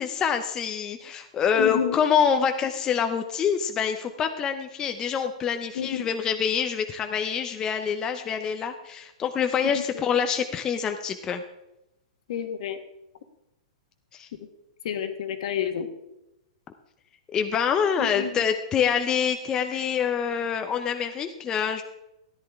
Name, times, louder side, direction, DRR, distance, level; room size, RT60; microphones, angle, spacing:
voice 1, 0.0-11.4 14.1-14.3 17.3-21.8, left 7 dB, 20° left, 6 dB, 0.6 m, -26 dB
voice 2, 1.6-2.0 5.7-6.1 9.9-10.0 12.3-12.8 14.8-15.9 18.0-18.4, left 9 dB, 65° left, 8 dB, 1.4 m, -29 dB
13.5 x 11.0 x 3.5 m, 0.90 s
hypercardioid pair, 150°, 4 cm